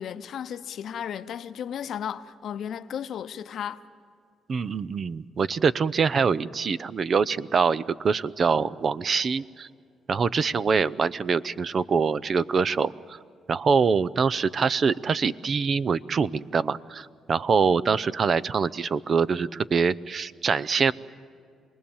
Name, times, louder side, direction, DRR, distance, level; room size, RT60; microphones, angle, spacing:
voice 1, 0.0-3.8, left 9 dB, 65° left, 0.8 m, -34 dB
voice 2, 4.5-9.7 10.1-13.2 13.5-20.9, right 5 dB, 45° right, 0.5 m, -24 dB
27.0 x 20.0 x 7.1 m
cardioid pair, 90°, 0 cm